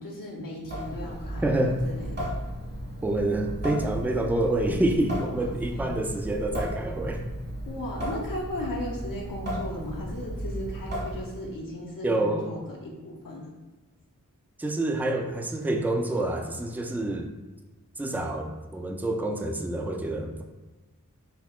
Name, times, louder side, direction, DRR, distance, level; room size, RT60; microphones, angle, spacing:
voice 1, 0.0-2.3 5.2-5.5 5.7-5.9 7.6-13.5, left 1 dB, 85° left, -3 dB, 0.7 m, -36 dB
Water tap faucet / Sink (filling or washing) / Drip, 0.6-11.5, equal, 50° right, 1.3 m, -35 dB
voice 2, 1.4-1.8 3.0-7.3 12.0-12.5 14.6-17.3 18.0-20.4, right 1 dB, 5° right, 4 dB, 0.3 m, -27 dB
5.7 x 2.1 x 2.3 m, 1.2 s
wide cardioid pair, 40°, 32 cm